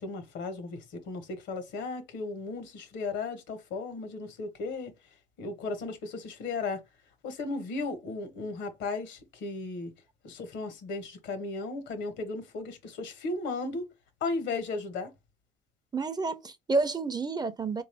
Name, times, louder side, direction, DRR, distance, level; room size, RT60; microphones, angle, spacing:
voice 1, 0.0-4.9 5.4-6.8 7.2-9.9 10.2-13.9 14.2-15.1, left 3 dB, 75° left, 1.1 m, -35 dB
voice 2, 15.9-17.8, right 3 dB, 20° right, 0.5 m, -29 dB
3.5 x 2.6 x 3.4 m
cardioid pair, 95°, 19 cm